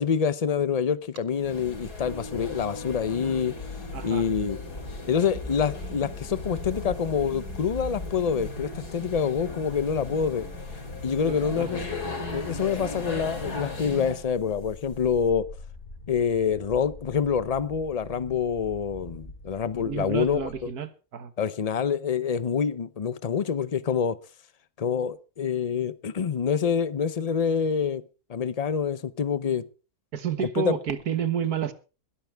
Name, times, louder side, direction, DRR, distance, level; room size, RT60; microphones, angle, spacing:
voice 1, 0.0-3.5 4.0-4.6 5.1-10.5 11.0-11.8 12.3-15.5 16.1-20.5 21.4-24.2 24.8-28.0 28.3-29.6 30.6-30.8, left 7 dB, 45° left, 0.5 m, -26 dB
sound 1, 1.3-14.3, left 3 dB, 85° left, 4.0 m, -37 dB
Piano, 2.0-8.8, equal, 20° left, 0.8 m, -48 dB
sound 2, 3.3-20.6, left 2 dB, 65° left, 5.3 m, -43 dB
voice 2, 3.9-4.3 11.2-11.8 19.8-21.3 30.1-31.7, right 8 dB, 75° right, 1.7 m, -30 dB
21.5 x 11.0 x 3.4 m
omnidirectional pair, 1.6 m